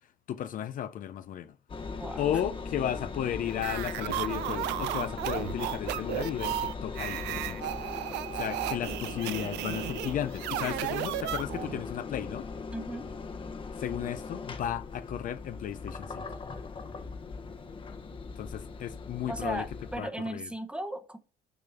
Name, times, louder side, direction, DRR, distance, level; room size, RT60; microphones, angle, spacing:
voice 1, 0.3-1.6 2.2-7.7 8.3-12.5 13.7-16.2 18.4-19.7 20.0-20.5, left 10 dB, 55° left, 0.5 m, -34 dB
Engine, 1.7-20.0, left 4 dB, 30° left, 1.0 m, -39 dB
sound 1, 3.5-11.8, right 14 dB, 90° right, 0.6 m, -34 dB
voice 2, 12.7-13.1 19.3-21.2, right 1 dB, 5° right, 1.0 m, -36 dB
7.0 x 5.1 x 5.5 m
cardioid pair, 110°, 17 cm